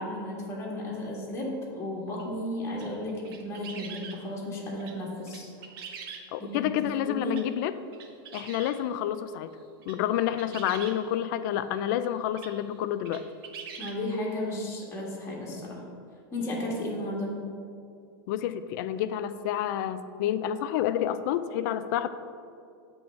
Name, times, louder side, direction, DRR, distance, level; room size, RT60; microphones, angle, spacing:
voice 1, 0.0-5.5 6.4-6.8 7.1-7.3 13.8-15.8 16.3-17.4, left 1 dB, 20° left, -3 dB, 1.6 m, -34 dB
sound 1, 2.2-2.3 2.7-4.2 4.8-5.0 5.3-6.5 7.3-7.5 7.9-8.8 9.6-10.0 10.3-11.0 12.0-12.1 12.4-12.5 13.0-14.0, right 6 dB, 80° right, 0.9 m, -43 dB
voice 2, 6.3-7.7 8.3-9.6 9.9-13.2 18.3-22.1, left 11 dB, 55° left, 12 dB, 0.4 m, -29 dB
7.8 x 3.5 x 6.4 m, 2.4 s
supercardioid pair, 145°, 12 cm